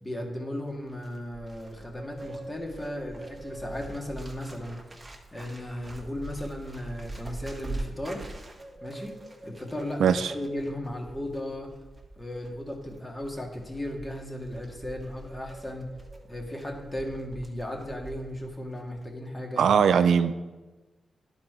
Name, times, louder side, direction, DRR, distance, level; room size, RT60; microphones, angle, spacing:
voice 1, 0.0-4.8 5.3-8.3 8.8-9.2 9.4-11.7 12.2-15.9 16.3-19.6, left 1 dB, 20° left, 1 dB, 1.8 m, -36 dB
Bird, 0.7-18.5 18.8-19.1, right 2 dB, 25° right, 1.4 m, -43 dB
voice 2, 10.0-10.3 19.6-20.3, right 7 dB, 80° right, 11 dB, 0.4 m, -20 dB
10.5 x 4.2 x 4.6 m, 1.2 s
cardioid pair, 55°, 0 cm